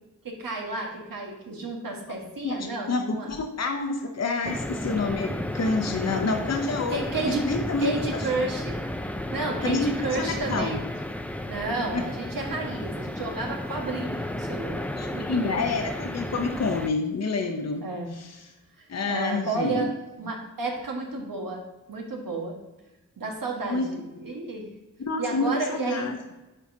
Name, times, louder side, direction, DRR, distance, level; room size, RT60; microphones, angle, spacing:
voice 1, 0.2-3.3 6.9-7.5 7.8-8.8 9.3-10.8 11.5-14.9 15.1-15.7 17.8-18.1 19.1-22.6 23.2-24.7 25.2-26.1, right 2 dB, 85° right, 0 dB, 1.5 m, -31 dB
voice 2, 2.1-8.2 9.6-10.8 11.9-12.1 14.9-17.8 18.1-18.4 18.9-19.9 23.6-23.9 25.0-26.2, left 3 dB, 50° left, 4 dB, 0.8 m, -28 dB
sound 1, 4.4-16.9, left 1 dB, 5° left, 0.5 m, -33 dB
9.8 x 4.9 x 2.7 m, 1.1 s
wide cardioid pair, 70°, 33 cm